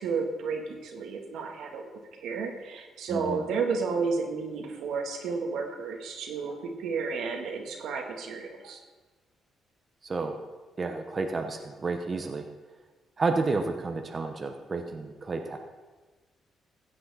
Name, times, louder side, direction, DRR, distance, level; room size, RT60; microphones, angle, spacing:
voice 1, 0.0-1.8 2.1-8.8, right 4 dB, 80° right, 3 dB, 1.8 m, -32 dB
voice 2, 3.1-3.4 10.0-10.3 10.8-12.5 13.2-15.6, right 3 dB, 35° right, 4 dB, 1.0 m, -31 dB
16.0 x 7.7 x 4.2 m, 1.3 s
cardioid pair, 90°, 0 cm